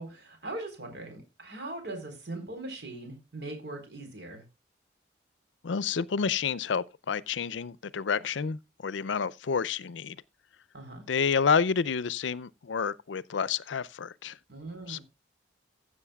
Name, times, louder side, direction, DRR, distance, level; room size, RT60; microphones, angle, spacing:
voice 1, 0.0-4.4 10.7-11.1 14.5-15.0, right 2 dB, 65° right, 3.9 m, -40 dB
voice 2, 5.6-10.2 11.1-14.4 14.9-15.0, left 6 dB, 85° left, 0.5 m, -29 dB
15.5 x 7.7 x 2.3 m
head